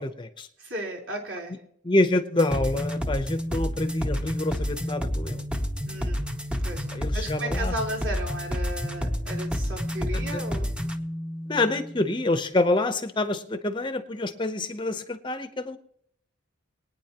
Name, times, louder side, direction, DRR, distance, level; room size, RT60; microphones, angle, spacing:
voice 1, 0.0-0.5 1.8-5.4 6.9-7.7 10.3-10.4 11.5-15.8, left 2 dB, 25° left, 8 dB, 0.7 m, -27 dB
voice 2, 0.6-1.6 5.8-6.2 6.6-10.7, right 1 dB, 60° right, -2 dB, 4.0 m, -35 dB
sound 1, 2.4-12.3, equal, 5° right, 0.8 m, -30 dB
23.0 x 9.5 x 2.9 m, 0.67 s
head